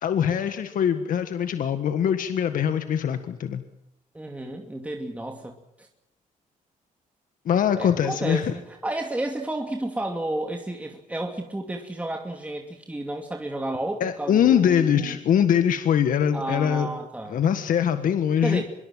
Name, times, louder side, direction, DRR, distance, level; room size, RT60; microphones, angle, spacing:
voice 1, 0.0-3.6 7.4-8.5 14.0-16.9 17.3-18.6, left 8 dB, 70° left, 9 dB, 1.7 m, -22 dB
voice 2, 4.1-5.9 7.8-15.2 16.3-17.4 18.4-18.7, right 1 dB, 10° right, 2 dB, 2.6 m, -32 dB
25.5 x 22.5 x 7.7 m, 0.80 s
cardioid pair, 110°, 14 cm